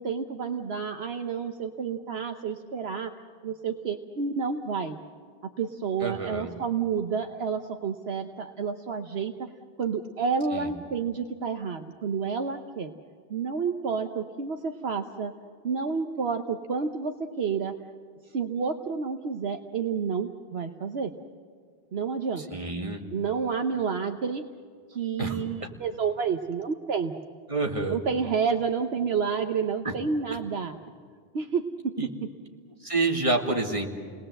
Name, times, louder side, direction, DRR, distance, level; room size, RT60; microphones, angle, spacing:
voice 1, 0.0-3.1 3.4-5.0 5.6-9.5 9.8-12.9 13.3-15.3 15.6-17.7 18.3-21.1 21.9-22.5 23.1-24.4 24.9-27.1 27.9-30.8 31.3-32.1, right 6 dB, 65° right, 5 dB, 1.1 m, -30 dB
voice 2, 6.0-6.5 10.5-10.7 22.5-23.0 25.2-25.7 27.5-28.0 29.8-29.9 32.0-32.1 32.8-33.9, right 2 dB, 30° right, 1 dB, 2.2 m, -28 dB
29.0 x 20.0 x 7.8 m, 2.1 s
omnidirectional pair, 1.2 m